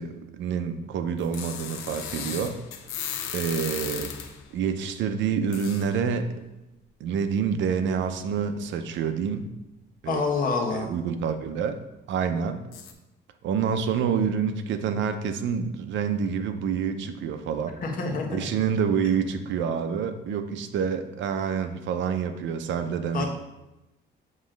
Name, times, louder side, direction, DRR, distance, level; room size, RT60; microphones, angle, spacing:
voice 1, 0.0-2.6 3.3-4.1 4.5-6.3 7.0-9.5 10.0-10.2 10.7-11.8 12.1-12.6 13.4-17.7 18.3-23.3, right 7 dB, 70° right, 8 dB, 0.7 m, -27 dB
sound 1, 1.2-4.5 5.5-5.9 7.2-7.3 7.9-8.0 8.4-8.5 12.7-12.9, left 8 dB, 90° left, 0.8 m, -36 dB
voice 2, 10.0-10.9 17.8-18.5 23.1-23.3, left 4 dB, 45° left, 0 dB, 1.3 m, -27 dB
7.6 x 3.2 x 5.1 m, 0.98 s
cardioid pair, 130°, 20 cm